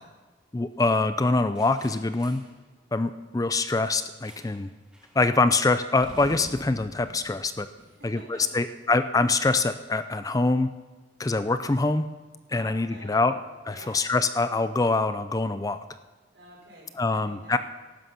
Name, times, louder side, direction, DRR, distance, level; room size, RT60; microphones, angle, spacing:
voice 1, 0.5-2.4 2.9-4.7 5.2-7.7 8.0-8.2 8.5-10.7 11.2-12.1 12.5-13.3 13.7-15.8 17.0-17.6, left 3 dB, 20° left, 11 dB, 0.4 m, -24 dB
sound 1, 1.6-2.6 4.2-4.7 4.9-5.2 6.0-8.4, equal, 5° right, 1.7 m, -46 dB
voice 2, 7.7-8.6 12.5-13.4 13.6-14.0 16.3-17.6, right 1 dB, 70° right, -3 dB, 5.5 m, -49 dB
14.5 x 11.5 x 5.8 m, 1.3 s
head